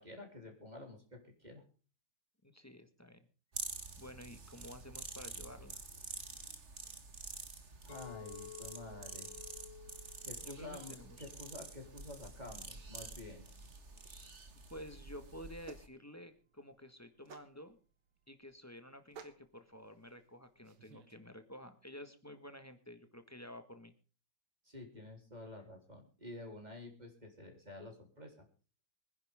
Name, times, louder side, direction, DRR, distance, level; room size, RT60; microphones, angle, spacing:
voice 1, 0.0-1.6 7.8-9.3 10.2-13.5 24.6-28.3, left 2 dB, 20° right, 2 dB, 3.8 m, -50 dB
voice 2, 2.4-3.3 4.0-5.8 10.4-11.3 14.7-17.8 18.3-23.9, equal, 10° left, 9 dB, 1.3 m, -51 dB
sound 1, 3.5-15.8, right 4 dB, 35° right, 1.9 m, -48 dB
Chink clink, 7.9-12.2 12.7-13.1, left 12 dB, 70° left, 1.6 m, -55 dB
sound 2, 15.6-21.1, right 6 dB, 80° right, 2.2 m, -59 dB
24.5 x 10.5 x 3.6 m, 0.38 s
omnidirectional pair, 2.2 m